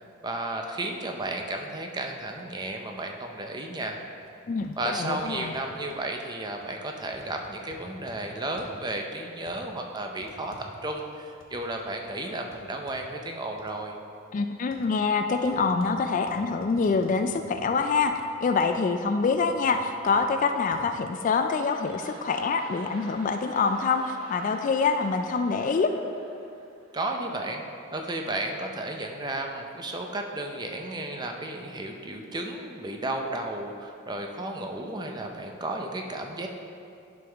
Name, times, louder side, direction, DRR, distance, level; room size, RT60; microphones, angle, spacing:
voice 1, 0.2-4.0 4.8-10.5 10.8-13.9 26.9-27.6 27.9-36.5, right 2 dB, 20° right, 2 dB, 0.6 m, -33 dB
sound 1, 4.2-4.3 4.6-4.8 5.2-6.0 6.6-6.8 7.1-8.2 8.6-8.8 9.5-9.6 10.2-11.8 12.1-12.2 12.5-13.0 13.6-13.7 14.7-14.9 15.4-15.9 16.3-17.7 18.0-18.1 18.6-18.8 19.3-19.8 20.1-20.2 20.7-20.8, left 1 dB, 75° left, 1.1 m, -52 dB
voice 2, 4.5-5.5 14.3-18.1 18.4-25.9, left 4 dB, 40° left, 7 dB, 0.3 m, -25 dB
sound 2, 20.9-27.4 28.0-28.1, right 2 dB, 75° right, 1.0 m, -48 dB
10.5 x 5.4 x 3.4 m, 2.5 s
head